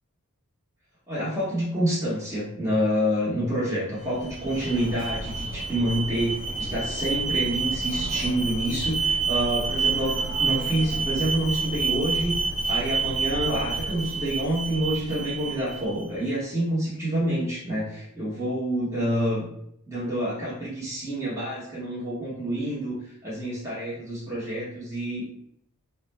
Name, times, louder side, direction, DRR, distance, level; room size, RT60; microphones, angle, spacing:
voice 1, 1.1-12.3 12.6-19.5 19.9-22.9 23.2-25.2, right 1 dB, 15° right, -9 dB, 0.8 m, -27 dB
Alarm, 4.0-16.1, right 4 dB, 35° right, 0.5 m, -28 dB
2.4 x 2.1 x 3.1 m, 0.72 s
head